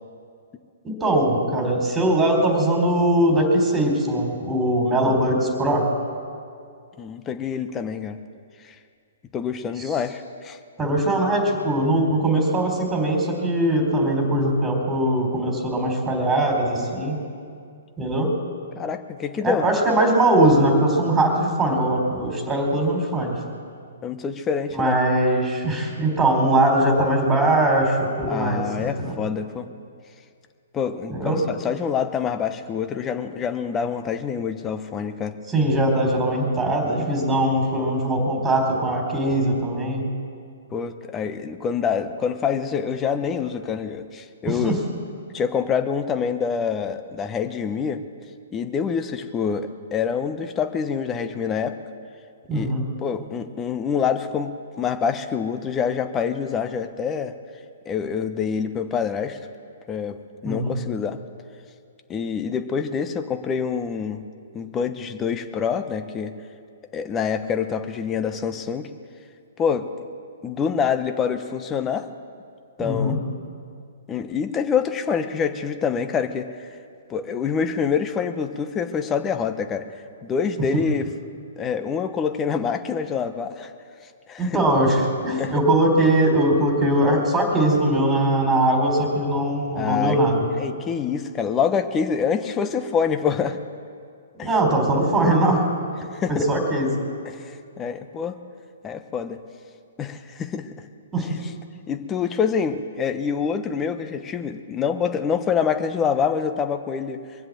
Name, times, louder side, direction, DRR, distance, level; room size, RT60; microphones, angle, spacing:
voice 1, 0.8-5.8 10.8-17.2 18.0-18.3 19.4-23.3 24.7-29.2 31.1-31.4 35.5-40.1 44.5-44.8 52.5-52.8 60.4-60.7 72.8-73.2 84.4-90.5 94.4-95.6 96.3-97.0 101.1-101.3, right 1 dB, 10° right, 1 dB, 4.0 m, -21 dB
voice 2, 7.0-8.2 8.6-8.8 9.3-10.6 18.7-19.7 24.0-24.9 28.3-29.7 30.7-35.3 40.7-44.8 45.3-48.0 48.5-51.7 52.5-52.7 53.0-54.5 54.8-57.3 57.9-59.4 59.9-60.2 60.4-61.2 62.1-64.2 64.5-66.3 66.9-68.9 69.6-69.9 70.4-72.1 72.8-73.2 74.1-76.5 77.1-79.8 80.2-81.1 81.6-83.7 84.3-84.6 85.4-85.5 89.8-90.2 90.6-93.6 94.4-94.5 96.1-96.5 97.2-98.4 98.8-99.4 100.0-100.7 101.2-101.3 101.9-107.2, left 6 dB, 20° left, 8 dB, 1.0 m, -26 dB
23.5 x 7.9 x 7.7 m, 2.3 s
figure-of-eight pair, 125°, 0 cm